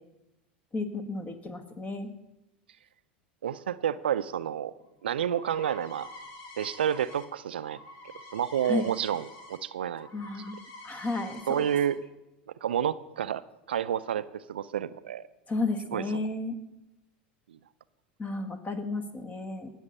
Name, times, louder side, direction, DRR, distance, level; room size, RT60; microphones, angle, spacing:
voice 1, 0.7-2.1 8.7-8.9 10.1-10.6 10.8-11.6 15.5-16.6 18.2-19.7, left 3 dB, 25° left, 9 dB, 1.8 m, -33 dB
voice 2, 3.4-4.7 5.0-6.1 6.6-7.8 8.3-10.1 11.5-12.0 12.6-15.3 15.9-16.0 17.5-17.6, right 9 dB, 85° right, 15 dB, 0.4 m, -30 dB
sound 1, 4.8-9.6 9.9-11.9, left 2 dB, 55° left, 2.5 m, -47 dB
19.0 x 7.2 x 5.4 m, 0.92 s
hypercardioid pair, 95°, 5 cm